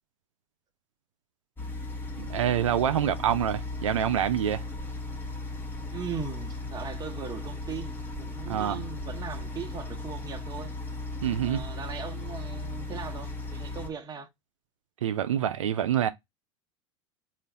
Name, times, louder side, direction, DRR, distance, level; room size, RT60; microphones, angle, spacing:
sound 1, 1.6-13.9, left 2 dB, 15° left, 1.1 m, -36 dB
voice 1, 2.2-4.6 8.5-8.8 11.2-11.6 15.0-16.1, right 10 dB, 90° right, 0.4 m, -26 dB
voice 2, 5.9-10.7 11.4-14.3, right 6 dB, 25° right, 0.9 m, -39 dB
3.8 x 2.5 x 3.3 m
hypercardioid pair, 95°, 16 cm